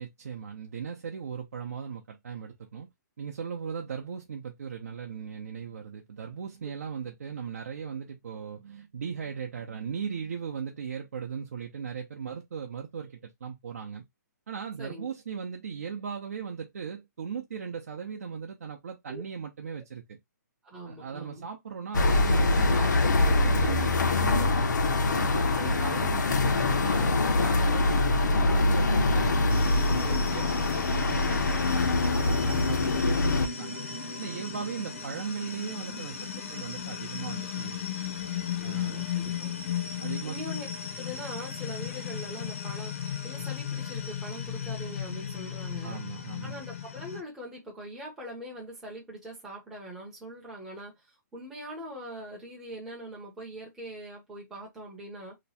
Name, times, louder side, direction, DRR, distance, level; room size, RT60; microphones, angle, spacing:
voice 1, 0.0-2.9 3.2-14.0 14.5-20.2 20.9-24.7 25.1-33.8 34.2-36.2 36.5-37.8 38.6-39.1 40.0-40.3 45.8-46.6, right 6 dB, 55° right, 0.7 m, -38 dB
voice 2, 14.8-15.1 19.1-19.2 20.6-21.5 25.2-25.7 30.0-30.6 38.6-39.5 40.2-40.7 41.0-46.0 46.4-55.4, right 1 dB, 5° right, 0.7 m, -42 dB
sound 1, 21.9-33.5, left 2 dB, 90° left, 0.8 m, -24 dB
sound 2, 29.5-47.2, left 7 dB, 45° left, 0.7 m, -36 dB
2.9 x 2.2 x 4.1 m
hypercardioid pair, 180°, 10 cm